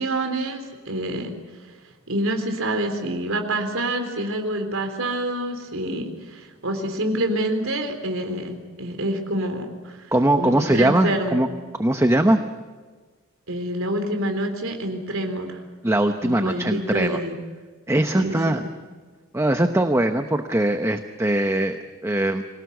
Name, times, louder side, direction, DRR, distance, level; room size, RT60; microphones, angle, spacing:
voice 1, 0.0-1.4 2.1-10.0 10.4-11.4 13.5-15.6 16.2-17.4 18.1-18.7, right 1 dB, 80° right, 5 dB, 3.8 m, -27 dB
voice 2, 10.1-11.5 11.8-12.4 15.8-17.2 17.9-18.6 19.3-22.4, right 1 dB, 15° right, 7 dB, 0.9 m, -21 dB
26.5 x 18.0 x 8.2 m, 1.4 s
head